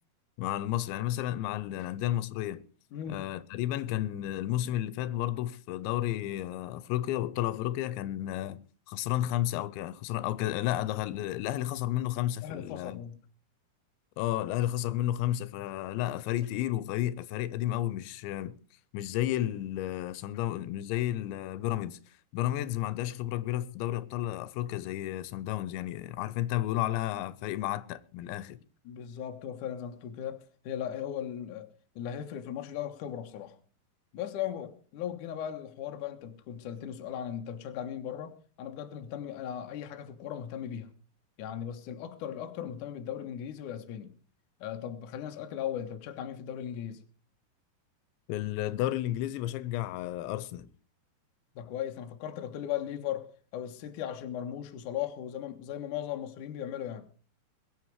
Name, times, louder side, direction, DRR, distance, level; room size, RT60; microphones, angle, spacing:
voice 1, 0.4-2.6 3.1-13.0 14.2-18.6 18.9-22.0 22.3-28.6 48.3-50.7, left 13 dB, 85° left, 3.1 m, -32 dB
voice 2, 2.9-3.3 12.4-13.2 28.8-31.7 32.0-33.6 34.1-41.0 41.4-44.1 44.6-47.0 51.6-57.1, left 10 dB, 60° left, 2.3 m, -37 dB
22.0 x 8.5 x 4.8 m
omnidirectional pair, 5.1 m